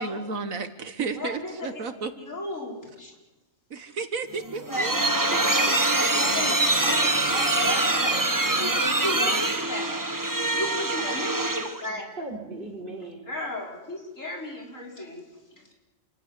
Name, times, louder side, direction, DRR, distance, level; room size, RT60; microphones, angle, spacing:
voice 1, 0.0-2.1 3.7-5.1 6.2-8.8, right 4 dB, 75° right, 9 dB, 1.8 m, -35 dB
voice 2, 1.2-1.8 2.2-3.1 4.7-4.9 6.0-6.5 6.8-8.4 8.7-10.0 10.5-12.0 13.3-15.2, left 1 dB, 65° left, -1 dB, 5.6 m, -34 dB
sound 1, 4.3-11.9, right 2 dB, 15° right, 1.2 m, -24 dB
voice 3, 5.3-6.6 12.2-13.3, right 2 dB, 40° right, 2 dB, 5.2 m, -38 dB
28.0 x 16.0 x 9.9 m, 1.1 s
omnidirectional pair, 1.4 m